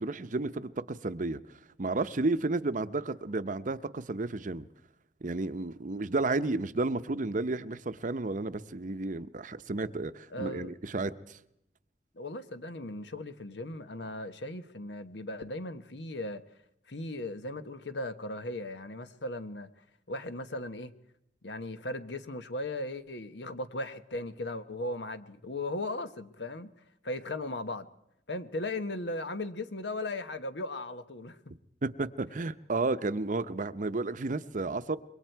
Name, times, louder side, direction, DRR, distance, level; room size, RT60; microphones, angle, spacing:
voice 1, 0.0-1.4 1.8-4.7 5.2-11.4 31.8-35.0, right 3 dB, 45° right, 0.7 m, -32 dB
voice 2, 10.3-10.7 12.2-16.4 16.9-19.7 20.1-20.9 21.4-26.7 27.0-27.9 28.3-31.4, left 2 dB, 80° left, 1.2 m, -37 dB
26.5 x 22.5 x 4.6 m
head